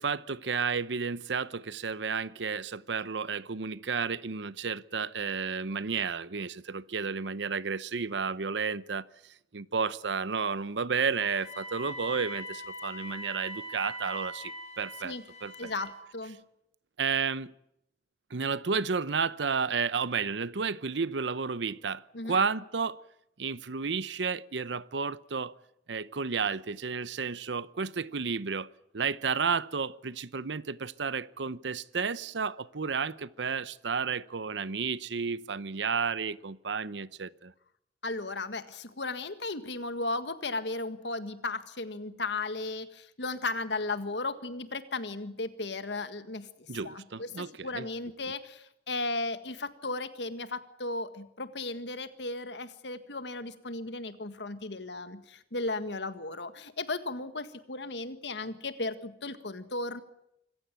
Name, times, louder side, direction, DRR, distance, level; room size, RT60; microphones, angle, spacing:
voice 1, 0.0-9.1 9.5-15.1 15.4-15.7 17.0-17.5 18.3-23.0 23.4-25.5 25.9-37.5 46.7-47.8, right 5 dB, 80° right, 0.8 m, -32 dB
Wind instrument woodwind instrument, 11.2-16.0, equal, 40° left, 4.6 m, -42 dB
voice 2, 15.6-16.4 22.1-22.4 38.0-46.5 46.8-60.0, left 2 dB, 75° left, 1.8 m, -35 dB
26.0 x 15.0 x 9.1 m
head